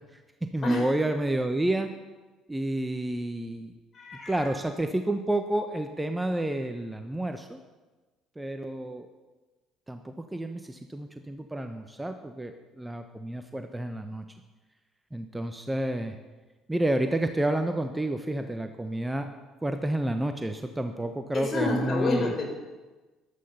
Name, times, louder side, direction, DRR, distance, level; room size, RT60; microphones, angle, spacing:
voice 1, 0.4-1.9 2.5-3.7 4.3-7.6 8.4-9.1 9.9-14.2 15.1-16.2 16.7-19.3 19.6-22.3, right 1 dB, 10° right, 7 dB, 1.1 m, -30 dB
voice 2, 3.9-4.6 21.3-22.5, left 2 dB, 40° left, 3 dB, 4.3 m, -28 dB
15.0 x 11.5 x 5.6 m, 1.2 s
figure-of-eight pair, 55°, 0 cm